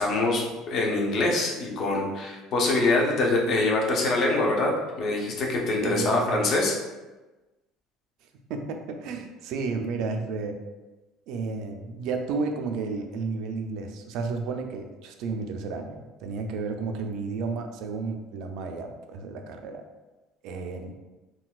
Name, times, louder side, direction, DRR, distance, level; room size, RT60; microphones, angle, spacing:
voice 1, 0.0-6.7, left 2 dB, 40° left, -1 dB, 0.6 m, -24 dB
voice 2, 5.8-6.5 8.5-10.6 11.3-19.8 20.4-21.0, right 4 dB, 60° right, 4 dB, 0.4 m, -32 dB
3.8 x 2.2 x 2.4 m, 1.1 s
cardioid pair, 160°, 0 cm